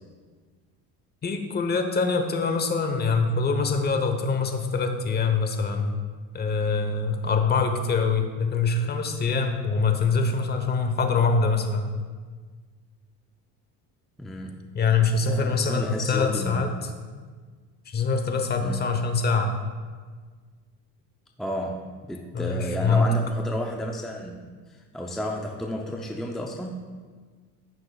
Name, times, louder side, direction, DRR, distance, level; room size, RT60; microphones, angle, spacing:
voice 1, 1.2-6.0 6.3-11.9 14.7-16.9 17.9-19.6 22.3-23.1, left 4 dB, 30° left, 6 dB, 0.9 m, -24 dB
voice 2, 14.2-14.6 15.2-16.7 18.6-18.9 21.4-26.8, equal, ahead, 0 dB, 0.5 m, -32 dB
15.0 x 6.1 x 2.3 m, 1.5 s
cardioid pair, 120°, 36 cm